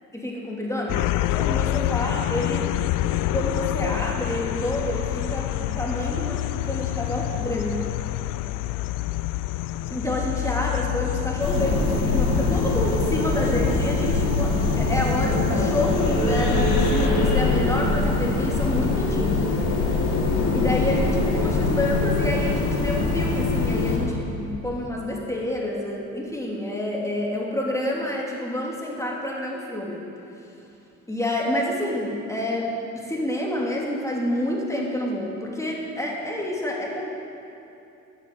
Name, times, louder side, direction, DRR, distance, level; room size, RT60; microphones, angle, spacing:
voice 1, 0.1-1.0 1.3-2.7 3.3-7.8 9.9-19.4 20.5-30.1 31.1-37.0, left 1 dB, 5° left, -3 dB, 2.9 m, -28 dB
sound 1, 0.9-17.1, left 15 dB, 50° left, 0.5 m, -28 dB
sound 2, 11.4-24.0, left 3 dB, 65° left, 3.6 m, -23 dB
15.5 x 7.2 x 7.8 m, 2.8 s
hypercardioid pair, 55°, 41 cm